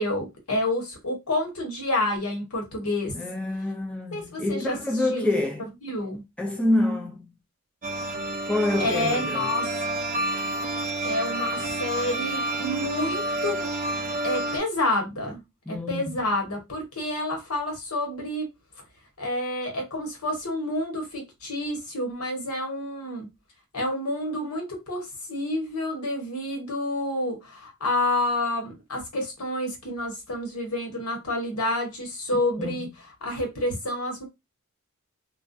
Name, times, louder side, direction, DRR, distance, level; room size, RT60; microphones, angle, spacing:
voice 1, 0.0-3.1 4.1-4.8 5.1-5.3 5.8-6.2 8.8-9.7 11.0-13.7 14.2-15.4 15.7-18.5 19.2-23.3 23.7-32.9 33.2-34.2, left 1 dB, 80° left, 1.0 m, -29 dB
voice 2, 3.1-5.7 6.4-7.3 8.5-9.5 15.7-16.1 32.3-32.9, left 1 dB, 5° left, 0.4 m, -27 dB
sound 1, 7.8-14.6, right 1 dB, 35° right, 0.6 m, -29 dB
2.3 x 2.1 x 2.6 m
head